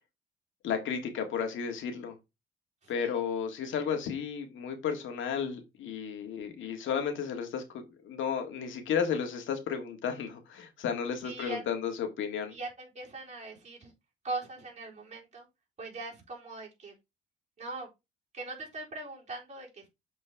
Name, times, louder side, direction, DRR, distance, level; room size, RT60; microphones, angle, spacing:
voice 1, 0.6-2.2 2.9-12.5, left 7 dB, 75° left, 1.8 m, -33 dB
voice 2, 2.8-3.2 3.7-4.0 11.2-11.6 12.5-13.9 14.2-15.5 15.8-17.0 17.6-17.9 18.3-19.9, right 3 dB, 35° right, 3.8 m, -41 dB
7.1 x 4.4 x 3.4 m
cardioid pair, 90°, 20 cm